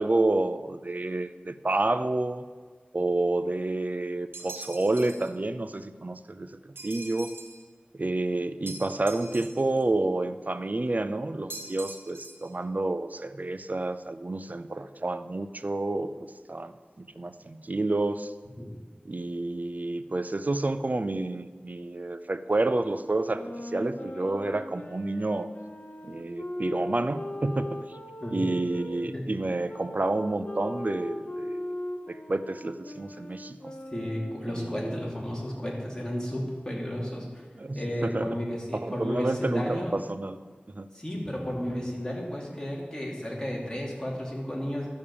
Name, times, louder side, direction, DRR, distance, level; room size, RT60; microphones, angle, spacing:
voice 1, 0.0-2.4 2.9-7.3 8.0-18.3 19.0-25.5 26.0-27.8 28.3-31.8 32.1-33.7 34.5-35.0 37.6-38.3 38.7-40.4 40.7-40.9, right 2 dB, 45° right, 12 dB, 0.5 m, -29 dB
sound 1, 4.3-5.3 6.8-7.6 8.7-9.8 11.5-12.5, right 2 dB, 80° right, 1.2 m, -43 dB
sound 2, 23.1-29.0 29.7-35.1, left 1 dB, 50° left, 1.1 m, -39 dB
voice 2, 33.9-37.4 37.7-39.9 40.9-44.9, equal, 20° left, -3 dB, 2.9 m, -33 dB
12.5 x 5.2 x 6.9 m, 1.5 s
wide cardioid pair, 40°, 4 cm